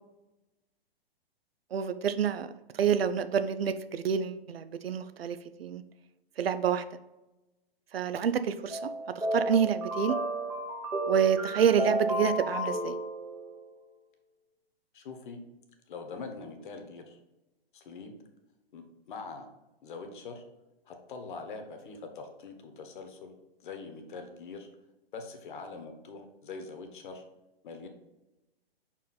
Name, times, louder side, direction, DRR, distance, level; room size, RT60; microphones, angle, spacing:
voice 1, 1.7-5.8 6.4-6.8 7.9-10.2 11.1-13.0, right 8 dB, 70° right, 11 dB, 0.6 m, -28 dB
sound 1, 8.7-13.7, right 1 dB, 10° right, 0.8 m, -32 dB
voice 2, 14.9-15.4 15.9-17.2 17.7-18.1 18.7-19.5 19.8-20.4 20.9-23.3 23.6-24.7 25.1-27.2 27.6-27.9, left 4 dB, 55° left, 5 dB, 1.2 m, -43 dB
5.6 x 4.6 x 4.0 m, 1.0 s
hypercardioid pair, 130°, 31 cm